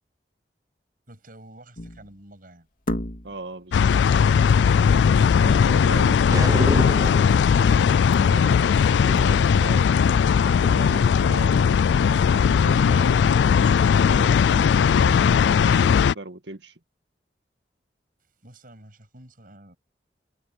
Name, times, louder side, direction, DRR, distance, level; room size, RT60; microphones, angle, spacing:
voice 1, 1.1-2.7 18.4-19.8, right 1 dB, 55° right, 7.7 m, -48 dB
sound 1, 1.8-2.2 2.9-3.5 5.9-6.2 6.4-6.5 7.0-7.4 7.8-8.7 9.2-9.3, left 1 dB, 50° left, 2.9 m, -34 dB
voice 2, 3.2-4.1 5.4-7.5 7.9-11.7 12.3-16.8, right 2 dB, 85° right, 2.0 m, -38 dB
sound 2, 3.7-16.1, left 7 dB, 85° left, 0.3 m, -18 dB
sound 3, 6.3-7.4, right 1 dB, 20° right, 0.7 m, -27 dB
head